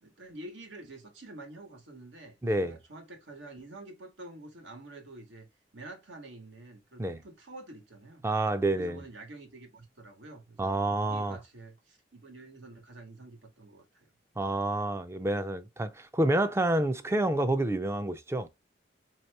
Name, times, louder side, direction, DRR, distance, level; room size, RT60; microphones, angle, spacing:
voice 1, 0.0-5.5 5.7-8.2 8.7-14.1, right 2 dB, 80° right, 1.4 m, -48 dB
voice 2, 2.4-2.8 7.0-7.2 8.2-9.0 10.6-11.4 14.4-18.5, right 1 dB, 15° right, 0.4 m, -28 dB
3.2 x 2.9 x 4.5 m
head